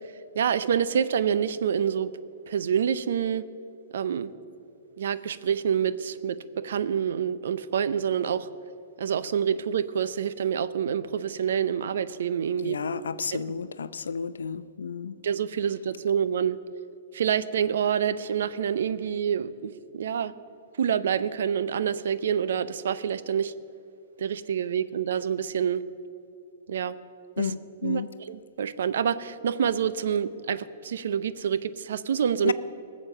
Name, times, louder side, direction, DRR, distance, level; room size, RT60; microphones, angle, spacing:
voice 1, 0.4-2.1 2.5-3.4 3.9-4.3 5.0-6.4 6.6-8.5 9.0-12.8 13.3-13.5 15.2-16.6 17.1-20.3 20.8-23.5 24.2-25.8 26.7-27.0 27.4-27.5 27.8-32.5, right 8 dB, 75° right, 14 dB, 0.6 m, -27 dB
voice 2, 12.6-15.1 27.4-28.1 32.4-32.5, left 6 dB, 90° left, 15 dB, 0.5 m, -32 dB
18.5 x 7.4 x 6.6 m, 2.7 s
hypercardioid pair, 135°, 0 cm